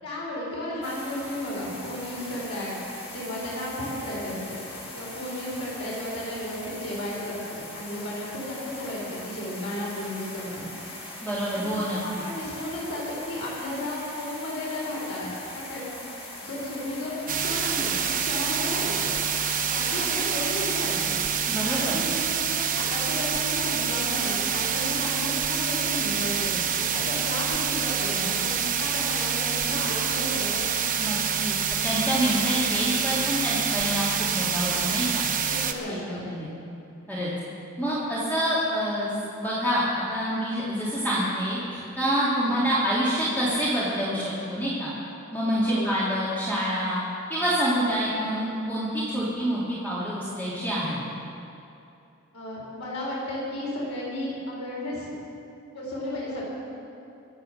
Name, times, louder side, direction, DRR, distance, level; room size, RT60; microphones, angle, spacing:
voice 1, 0.0-2.8 3.1-4.4 4.9-10.7 11.5-11.6 12.0-15.8 16.4-19.1 19.7-21.2 21.7-30.7 35.4-36.3 42.3-42.6 45.6-45.9 52.3-55.1 55.7-56.4, left 1 dB, 75° left, -5 dB, 4.4 m, -33 dB
sound 1, 0.8-20.4, left 2 dB, 30° left, 2.4 m, -41 dB
voice 2, 11.2-12.2 21.5-22.0 31.0-31.6 31.8-35.2 35.9-36.5 37.1-37.3 37.8-39.1 39.4-44.9 45.3-47.0 47.3-51.0, equal, 10° left, -9 dB, 2.5 m, -27 dB
sound 2, 17.3-35.7, right 7 dB, 40° right, 1.0 m, -27 dB
23.5 x 8.1 x 6.5 m, 2.8 s
head